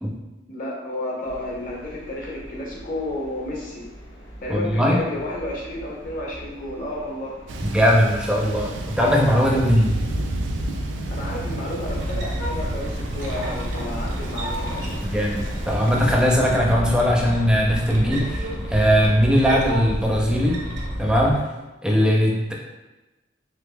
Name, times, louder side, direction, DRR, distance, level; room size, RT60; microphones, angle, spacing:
voice 1, 0.5-3.9 4.4-7.3 11.1-14.7, left 1 dB, 50° left, -2 dB, 0.8 m, -31 dB
sound 1, 1.2-19.2, equal, 80° left, 1.1 m, -40 dB
voice 2, 4.5-5.0 7.6-10.0 15.0-18.4 18.7-20.6 21.0-21.4 21.8-22.5, equal, 5° right, -2 dB, 0.5 m, -19 dB
Thunder, 7.5-16.4, right 1 dB, 90° right, 0.4 m, -32 dB
sound 2, 11.9-21.4, equal, 70° right, 0.8 m, -30 dB
3.9 x 3.1 x 2.2 m, 1.1 s
head